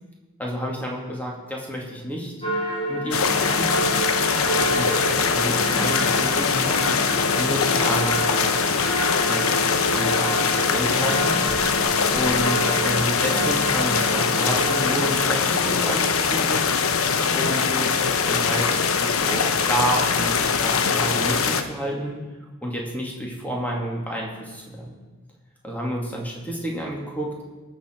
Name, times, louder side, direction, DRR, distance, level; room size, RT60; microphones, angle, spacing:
voice 1, 0.4-2.3 2.9-3.7 4.5-8.6 9.2-16.9 17.3-18.0 18.3-22.2 22.6-24.9 25.6-27.4, equal, 10° left, -2 dB, 2.3 m, -30 dB
sound 1, 2.4-15.1, right 1 dB, 25° left, 3.1 m, -29 dB
sound 2, 3.1-21.6, left 5 dB, 80° left, 0.8 m, -22 dB
19.5 x 7.1 x 4.6 m, 1.2 s
head